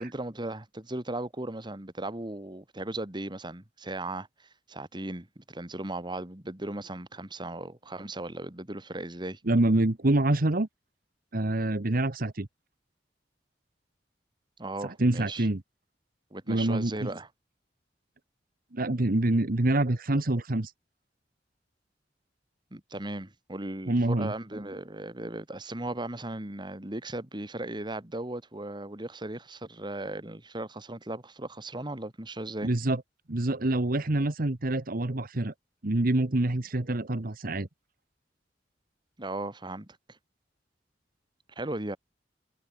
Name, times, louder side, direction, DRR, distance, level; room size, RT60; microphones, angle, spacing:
voice 1, 0.0-9.4 14.6-15.5 16.3-17.3 22.7-32.7 39.2-40.2 41.6-42.0, right 2 dB, 25° right, 2.1 m, -37 dB
voice 2, 9.5-10.7 11.3-12.5 14.8-15.6 16.5-17.1 18.7-20.7 23.9-24.3 32.6-33.0 33.3-35.5 35.8-37.7, right 2 dB, 55° right, 1.3 m, -26 dB
head